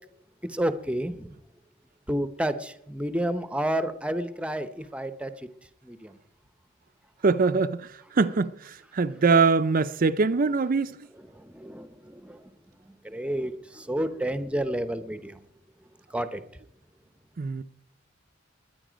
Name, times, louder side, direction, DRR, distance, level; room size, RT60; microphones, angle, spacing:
voice 1, 0.5-1.4 2.1-5.3 5.8-6.1 11.3-12.4 13.0-15.4 16.1-16.4, right 1 dB, 5° right, 0.7 m, -30 dB
voice 2, 7.2-11.0 17.4-17.6, right 4 dB, 45° right, 0.5 m, -23 dB
21.5 x 9.5 x 5.1 m
head